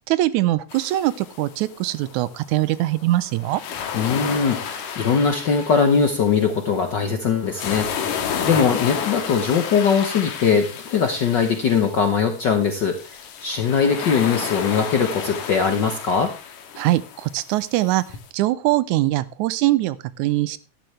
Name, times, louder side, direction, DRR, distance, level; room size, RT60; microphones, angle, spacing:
voice 1, 0.1-3.6 16.8-18.0 18.3-20.6, right 16 dB, 90° right, 16 dB, 2.1 m, -22 dB
sound 1, 0.7-18.3, left 7 dB, 90° left, 2.7 m, -32 dB
voice 2, 3.9-16.3, left 6 dB, 65° left, 6 dB, 1.1 m, -21 dB
12.0 x 11.5 x 3.3 m, 0.32 s
omnidirectional pair, 3.3 m